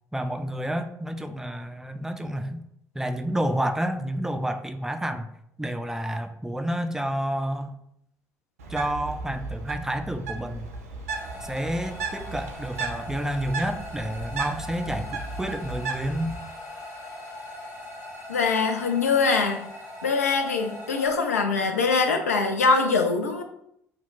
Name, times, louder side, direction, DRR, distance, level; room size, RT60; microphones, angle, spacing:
voice 1, 0.1-2.6 2.9-5.3 5.6-7.7 8.7-10.7 11.4-16.4, right 1 dB, 5° right, 9 dB, 0.3 m, -29 dB
Bird, 8.6-16.4, right 4 dB, 80° right, 0.4 m, -35 dB
sound 1, 11.1-21.1, left 1 dB, 50° left, 1.3 m, -41 dB
voice 2, 18.3-19.6 20.0-23.4, left 4 dB, 80° left, 5 dB, 0.4 m, -23 dB
2.8 x 2.1 x 3.9 m, 0.75 s
figure-of-eight pair, 55°, 8 cm